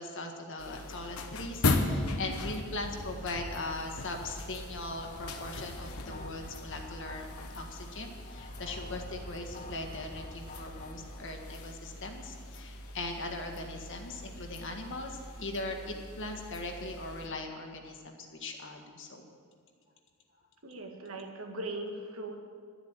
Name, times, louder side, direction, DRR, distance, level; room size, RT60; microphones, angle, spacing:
voice 1, 0.0-7.3 7.5-19.3, left 2 dB, 60° left, 3 dB, 1.7 m, -40 dB
sound 1, 0.6-17.3, left 2 dB, 85° left, 1.1 m, -38 dB
sound 2, 4.8-11.7, left 1 dB, 35° left, 1.4 m, -48 dB
voice 2, 20.6-22.4, right 2 dB, 70° right, 3 dB, 1.7 m, -39 dB
12.0 x 8.4 x 9.2 m, 2.1 s
head